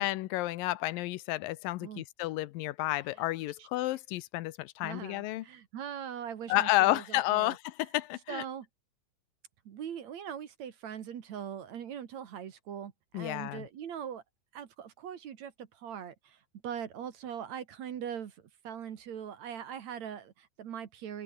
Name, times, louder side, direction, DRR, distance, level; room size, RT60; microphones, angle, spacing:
voice 1, 0.0-5.5 6.5-8.4 13.1-13.7, left 17 dB, 85° left, 2.4 m, -31 dB
voice 2, 4.8-7.6 8.3-8.7 9.7-14.2 14.5-21.2, right 8 dB, 55° right, 2.7 m, -41 dB
omnidirectional pair, 4.0 m